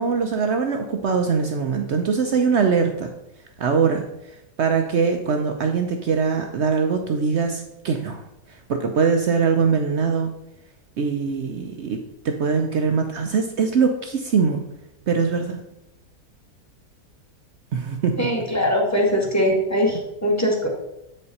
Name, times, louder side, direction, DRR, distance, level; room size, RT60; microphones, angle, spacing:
voice 1, 0.0-3.1 3.6-4.0 4.6-8.2 8.7-10.3 11.0-14.6 15.1-15.6 17.7-18.3, right 5 dB, 65° right, 5 dB, 0.7 m, -22 dB
voice 2, 18.2-20.7, equal, 10° left, 0 dB, 1.1 m, -21 dB
7.8 x 5.2 x 4.1 m, 0.87 s
omnidirectional pair, 1.7 m